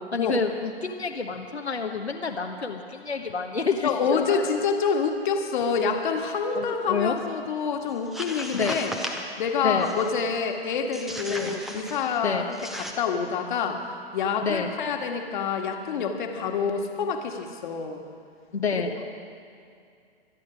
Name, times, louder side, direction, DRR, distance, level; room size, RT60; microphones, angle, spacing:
voice 1, 0.1-4.6 6.5-7.2 8.5-8.8 9.6-9.9 11.3-11.6 12.2-12.5 14.4-14.7 18.5-18.9, left 5 dB, 90° left, 3 dB, 1.3 m, -28 dB
voice 2, 3.8-8.9 9.4-13.8 14.1-18.0, left 5 dB, 50° left, 3 dB, 1.8 m, -27 dB
sound 1, 8.0-9.3 9.8-10.2 10.9-12.2 12.5-12.9, equal, ahead, 0.6 m, -36 dB
24.5 x 9.5 x 5.1 m, 2.4 s
figure-of-eight pair, 130°, 32 cm